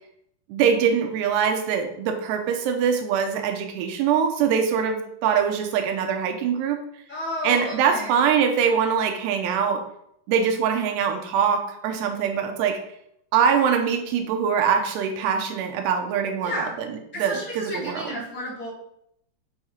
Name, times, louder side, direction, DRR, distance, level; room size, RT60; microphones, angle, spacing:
voice 1, 0.5-6.8 7.4-9.8 10.3-12.8 13.3-18.2, right 7 dB, 85° right, 4 dB, 2.9 m, -23 dB
voice 2, 7.1-8.2 16.4-16.7 17.1-18.7, left 1 dB, 5° left, -8 dB, 2.7 m, -32 dB
7.3 x 5.7 x 4.3 m, 0.74 s
omnidirectional pair, 4.8 m